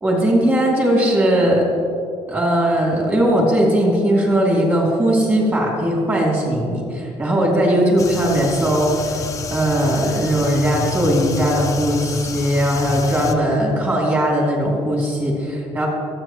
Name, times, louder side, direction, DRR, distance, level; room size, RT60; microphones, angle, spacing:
voice 1, 0.0-1.6 2.3-9.2 9.5-15.9, right 1 dB, 20° right, -3 dB, 2.8 m, -18 dB
sound 1, 8.0-13.3, left 4 dB, 30° left, 0.7 m, -29 dB
24.0 x 8.6 x 3.1 m, 2.4 s
cardioid pair, 165°, 11 cm